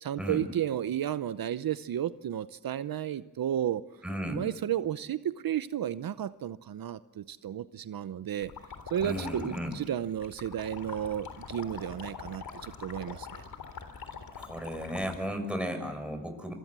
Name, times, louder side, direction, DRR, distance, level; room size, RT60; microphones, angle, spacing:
voice 1, 0.0-3.8 4.3-8.5 8.9-13.4, right 10 dB, 75° right, 14 dB, 0.8 m, -33 dB
voice 2, 4.0-4.4 9.0-9.8 14.3-16.5, equal, 5° right, 5 dB, 6.7 m, -34 dB
sound 1, 8.4-15.2, left 6 dB, 80° left, 3.7 m, -44 dB
26.5 x 23.5 x 7.5 m, 0.99 s
cardioid pair, 65°, 35 cm